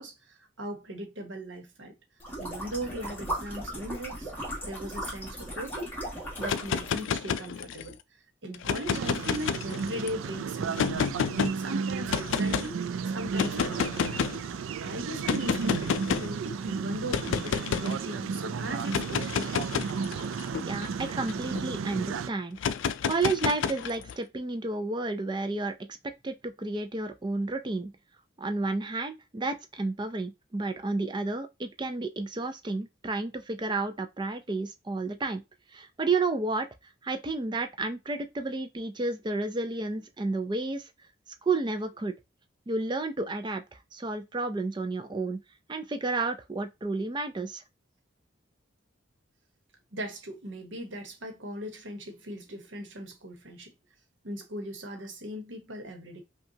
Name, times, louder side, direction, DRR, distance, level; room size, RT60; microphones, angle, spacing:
voice 1, 0.0-1.9 2.4-4.3 4.6-6.0 6.4-8.0 8.4-11.2 11.5-14.2 14.8-19.6 49.9-53.7 54.2-56.2, equal, 70° right, 1.1 m, -39 dB
sound 1, 2.2-7.0, equal, 10° left, 1.7 m, -37 dB
sound 2, 6.4-7.9 8.5-10.1 10.8-11.5 12.1-12.7 13.3-14.4 15.3-16.3 17.1-17.9 18.8-21.6 22.6-24.1, left 7 dB, 70° left, 0.3 m, -30 dB
sound 3, 8.9-22.3, right 5 dB, 90° right, 0.4 m, -33 dB
voice 2, 20.6-22.6 23.0-25.7 26.2-27.9 28.4-35.4 35.7-36.7 37.0-40.8 41.4-42.1 42.7-43.6 43.9-45.4 45.7-47.6, right 3 dB, 25° right, 0.4 m, -31 dB
5.4 x 2.3 x 2.8 m
head